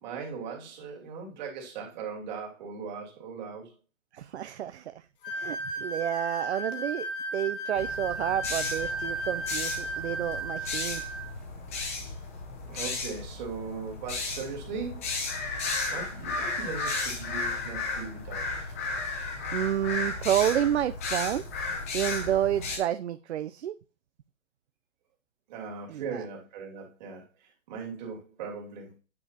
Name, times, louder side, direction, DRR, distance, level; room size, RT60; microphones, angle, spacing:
voice 1, 0.0-3.7 11.8-11.9 12.6-15.1 15.4-15.6 15.9-18.7 25.5-27.2 27.7-28.9, right 5 dB, 35° right, 2.7 m, -39 dB
voice 2, 4.1-7.1 7.3-11.0 19.5-21.4 21.9-23.7 25.9-26.2, right 11 dB, 55° right, 0.5 m, -30 dB
sound 1, 5.2-11.3, right 1 dB, 40° left, 1.5 m, -34 dB
sound 2, 7.7-22.8, left 3 dB, 10° left, 0.5 m, -34 dB
9.4 x 5.1 x 2.8 m
hypercardioid pair, 160°, 39 cm